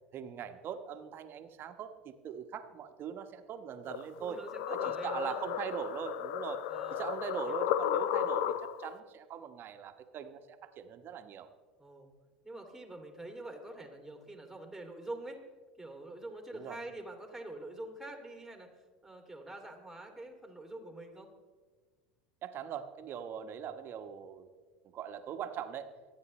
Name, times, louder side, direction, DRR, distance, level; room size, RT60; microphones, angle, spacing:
voice 1, 0.1-4.4 4.7-6.7 6.9-11.5 16.5-16.8 22.4-24.5 24.9-25.9, right 8 dB, 45° right, 8 dB, 1.2 m, -41 dB
voice 2, 3.8-5.4 6.7-7.1 7.5-7.6 11.8-12.1 12.4-15.4 15.8-18.7 19.0-21.3, right 2 dB, 5° right, 3 dB, 2.7 m, -45 dB
sound 1, 3.9-8.9, left 10 dB, 65° left, 0.6 m, -34 dB
24.5 x 9.4 x 3.2 m, 1.4 s
hypercardioid pair, 80°, 5 cm